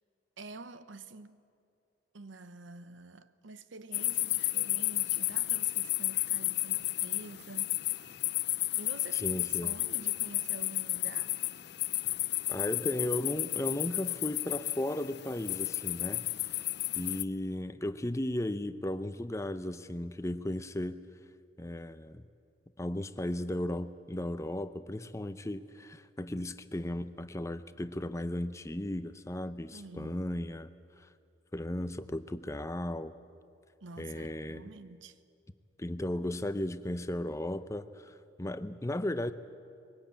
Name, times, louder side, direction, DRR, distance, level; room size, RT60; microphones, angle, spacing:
voice 1, 0.4-1.4 2.1-7.7 8.8-11.4 11.9-12.0 29.7-30.3 33.8-35.2, right 3 dB, 80° right, 0.8 m, -48 dB
sound 1, 3.9-17.2, left 16 dB, 60° left, 0.5 m, -32 dB
voice 2, 9.1-9.7 12.5-16.3 16.9-21.0 21.6-22.2 22.8-30.7 31.0-31.1 31.5-33.1 34.0-34.7 35.8-39.3, left 1 dB, 15° left, 0.6 m, -35 dB
22.0 x 18.0 x 8.6 m
head